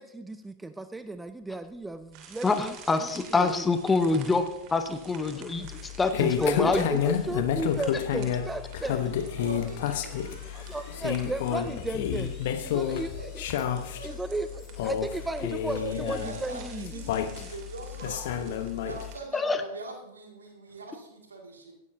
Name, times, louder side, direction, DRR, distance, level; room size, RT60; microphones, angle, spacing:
voice 1, 0.0-2.8 3.0-3.6 6.2-9.1 10.3-13.4 14.0-17.1 17.4-17.5, right 2 dB, 10° right, 12 dB, 0.4 m, -35 dB
sound 1, 1.4-14.9, left 4 dB, 35° left, 5.0 m, -55 dB
sound 2, 2.1-19.2, right 6 dB, 45° right, 2.5 m, -51 dB
voice 2, 2.4-7.1 19.3-19.6, left 3 dB, 15° left, 9 dB, 0.8 m, -26 dB
sound 3, 5.6-19.2, left 9 dB, 55° left, 0.9 m, -30 dB
voice 3, 9.3-11.0 13.1-14.2 14.5-14.6 15.7-21.7, right 3 dB, 70° right, 2 dB, 2.1 m, -43 dB
17.0 x 9.7 x 2.7 m, 0.86 s
figure-of-eight pair, 90°, 0 cm